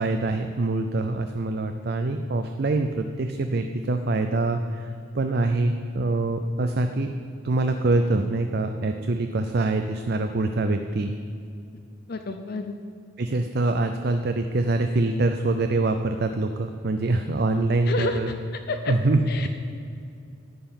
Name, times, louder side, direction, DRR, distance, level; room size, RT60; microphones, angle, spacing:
voice 1, 0.0-4.9 5.1-7.1 7.4-11.1 13.2-18.3 18.9-19.5, right 2 dB, 50° right, 7 dB, 0.5 m, -24 dB
voice 2, 12.1-12.8 17.9-18.2 18.7-18.9 19.3-19.5, left 3 dB, 50° left, 6 dB, 0.6 m, -29 dB
11.0 x 5.7 x 8.8 m, 2.5 s
head